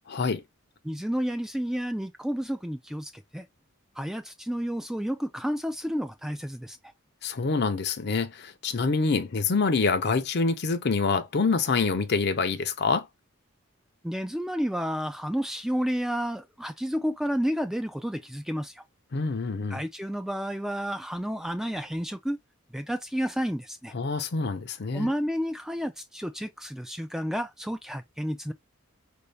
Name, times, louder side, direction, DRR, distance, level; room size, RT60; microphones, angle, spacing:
voice 1, 0.1-0.4 7.2-13.1 19.1-19.8 23.9-25.1, left 4 dB, 50° left, 0.5 m, -26 dB
voice 2, 0.8-3.5 4.0-6.8 14.0-18.8 19.7-22.4 22.7-23.9 24.9-28.5, equal, ahead, 0.3 m, -31 dB
4.7 x 2.7 x 3.2 m
head